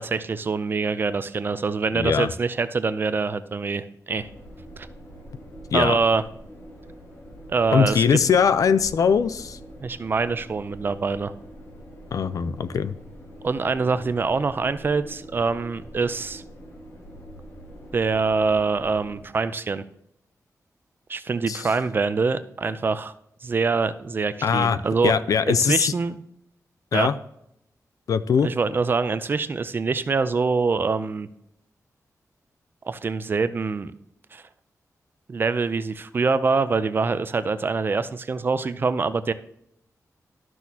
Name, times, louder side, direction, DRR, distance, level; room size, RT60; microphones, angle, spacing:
voice 1, 0.0-4.3 4.8-4.9 5.7-6.2 7.5-8.0 9.8-11.3 13.4-16.4 17.9-19.8 21.1-23.1 23.4-25.1 25.4-26.2 26.9-27.1 28.4-31.3 32.9-33.9 34.3-34.4 35.3-39.3, right 4 dB, 35° right, 13 dB, 0.5 m, -24 dB
voice 2, 1.9-2.3 5.7-6.0 7.7-9.6 12.1-12.9 21.5-21.7 24.4-24.8 25.0-25.9 26.9-27.1 28.1-28.5, left 6 dB, 70° left, 14 dB, 0.5 m, -21 dB
sound 1, 4.1-19.2, equal, 45° left, 2.1 m, -44 dB
12.5 x 6.2 x 2.8 m, 0.76 s
wide cardioid pair, 170°, 6 cm